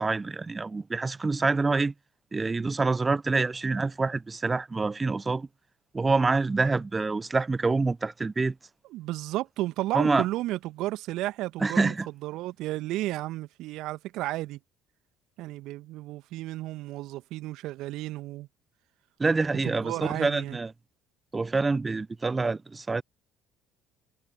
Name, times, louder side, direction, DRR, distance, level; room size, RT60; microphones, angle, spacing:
voice 1, 0.0-1.9 2.3-5.5 5.9-8.6 9.9-10.2 11.6-12.1 19.2-20.7 21.3-23.0, right 3 dB, 20° right, 0.5 m, -26 dB
voice 2, 8.9-11.9 12.2-14.6 15.4-18.5 19.6-20.6, right 16 dB, 60° right, 1.6 m, -33 dB
figure-of-eight pair, 55°, 0 cm